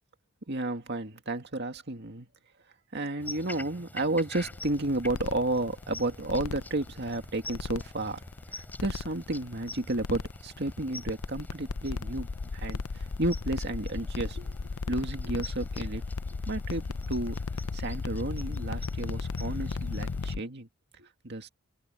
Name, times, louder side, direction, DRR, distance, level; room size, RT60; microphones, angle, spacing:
voice 1, 0.5-2.3 2.9-8.2 8.5-16.0 16.5-17.4 17.7-20.7 20.9-21.5, right 2 dB, 50° right, 2.2 m, -32 dB
sound 1, 3.2-20.3, left 2 dB, 10° left, 4.8 m, -47 dB
sound 2, 4.4-20.4, left 4 dB, 75° left, 0.6 m, -35 dB
open air
head